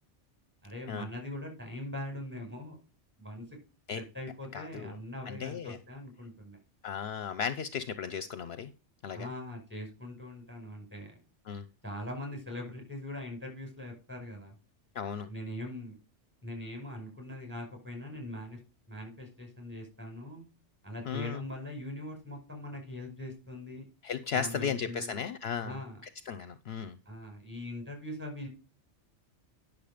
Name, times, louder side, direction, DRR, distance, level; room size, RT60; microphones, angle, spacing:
voice 1, 0.6-2.8 3.2-3.4 3.9-6.6 9.1-11.2 11.8-14.5 15.3-16.0 16.4-18.6 18.9-20.5 20.8-23.9 24.3-25.2 25.6-26.0 27.1-28.5, left 1 dB, 10° right, 2 dB, 5.3 m, -41 dB
voice 2, 4.5-5.0 5.3-5.8 6.8-8.7 9.0-9.3 11.5-11.6 14.9-15.3 21.0-21.4 24.0-25.7 26.3-27.0, left 7 dB, 65° left, 13 dB, 0.8 m, -35 dB
10.0 x 6.5 x 5.0 m, 0.32 s
omnidirectional pair, 1.2 m